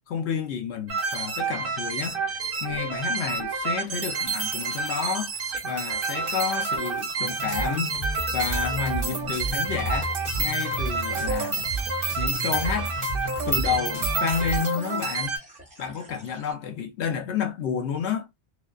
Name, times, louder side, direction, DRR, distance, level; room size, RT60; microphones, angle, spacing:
voice 1, 0.1-2.2 2.6-5.3 5.6-8.0 8.3-11.7 12.2-12.9 13.5-15.4 15.8-18.3, left 7 dB, 80° left, 0.9 m, -30 dB
sound 1, 0.9-15.4, right 4 dB, 60° right, 0.8 m, -29 dB
sound 2, 1.0-16.5, equal, 5° right, 1.1 m, -50 dB
sound 3, 7.4-14.6, right 1 dB, 45° left, 0.8 m, -32 dB
2.5 x 2.2 x 2.3 m
omnidirectional pair, 1.1 m